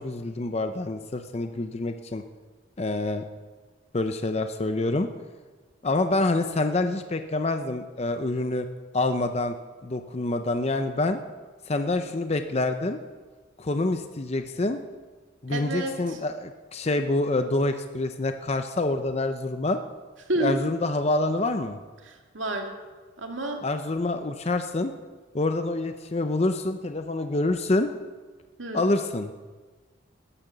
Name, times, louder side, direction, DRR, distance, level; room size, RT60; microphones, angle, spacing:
voice 1, 0.0-2.2 2.8-3.3 3.9-5.1 5.8-8.7 8.9-9.6 9.8-11.2 11.7-13.0 13.6-14.8 15.4-19.8 20.4-21.8 23.6-24.9 25.3-27.9 28.7-29.3, left 2 dB, 35° left, 8 dB, 0.6 m, -26 dB
voice 2, 15.5-16.2 20.3-20.6 22.0-22.7 23.2-23.6 28.6-28.9, right 2 dB, 80° right, 2 dB, 2.0 m, -30 dB
13.5 x 10.0 x 6.7 m, 1.4 s
head